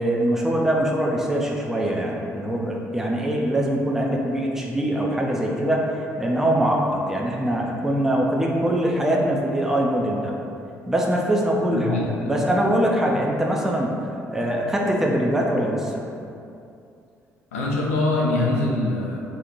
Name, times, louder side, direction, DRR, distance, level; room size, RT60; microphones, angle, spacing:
voice 1, 0.0-10.3 10.9-13.9 14.3-16.0, right 1 dB, 5° right, -2 dB, 0.5 m, -23 dB
voice 2, 11.7-12.4 13.1-13.2 17.5-19.2, left 2 dB, 80° left, -3 dB, 0.5 m, -24 dB
2.9 x 2.4 x 3.9 m, 2.6 s
figure-of-eight pair, 50°, 8 cm